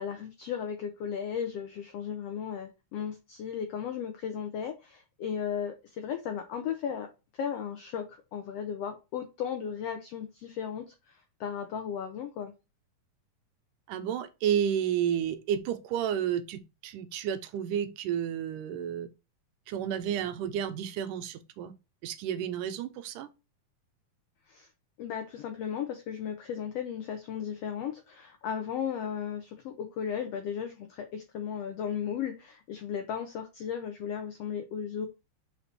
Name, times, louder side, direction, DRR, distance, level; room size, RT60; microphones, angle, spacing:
voice 1, 0.0-7.1 7.3-8.1 8.3-12.5 24.5-24.7 25.0-35.1, left 8 dB, 75° left, 1.5 m, -35 dB
voice 2, 13.9-19.1 19.7-21.7 22.0-23.3, right 9 dB, 85° right, 2.3 m, -31 dB
5.6 x 4.4 x 4.2 m
omnidirectional pair, 3.6 m